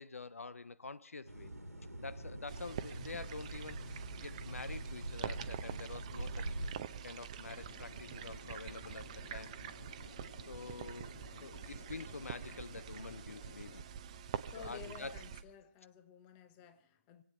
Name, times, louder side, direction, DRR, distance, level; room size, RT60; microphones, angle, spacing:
voice 1, 0.0-1.5 2.0-6.5 7.0-9.5 10.5-11.1 11.4-13.8 14.6-15.1, left 3 dB, 65° left, 0.7 m, -47 dB
sound 1, 1.3-6.7, right 1 dB, 85° right, 2.1 m, -44 dB
sound 2, 2.5-15.4, right 8 dB, 25° right, 0.7 m, -46 dB
sound 3, 7.5-13.8, left 4 dB, 45° left, 1.9 m, -56 dB
voice 2, 14.5-17.2, left 8 dB, 15° left, 0.8 m, -53 dB
26.0 x 8.9 x 5.5 m
figure-of-eight pair, 150°, 8 cm